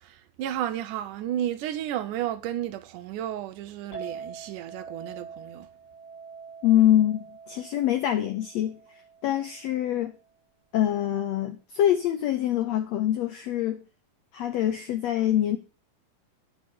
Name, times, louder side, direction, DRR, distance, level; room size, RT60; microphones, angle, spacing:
voice 1, 0.0-5.7, right 11 dB, 80° right, 1.9 m, -32 dB
Chink clink, 3.9-10.2, right 5 dB, 30° left, 3.4 m, -44 dB
voice 2, 6.6-8.8 9.2-10.2 10.7-13.8 14.3-15.6, left 12 dB, 90° left, 1.4 m, -24 dB
9.2 x 5.3 x 6.9 m
omnidirectional pair, 4.0 m